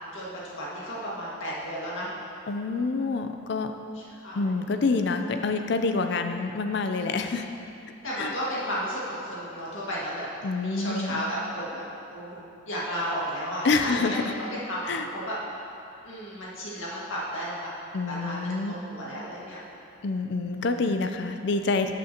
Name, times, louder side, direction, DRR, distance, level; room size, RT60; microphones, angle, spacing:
voice 1, 0.0-2.1 3.9-4.5 8.0-10.3 10.5-11.8 12.1-14.2 14.4-15.4 16.0-17.7 18.1-19.6, equal, 80° left, -7 dB, 1.9 m, -33 dB
voice 2, 2.5-3.7 4.3-7.4 8.2-8.3 10.4-11.2 13.6-14.2 14.9-15.1 17.9-18.7 20.0-21.9, left 3 dB, 55° left, 7 dB, 0.4 m, -27 dB
12.0 x 6.2 x 2.9 m, 2.6 s
head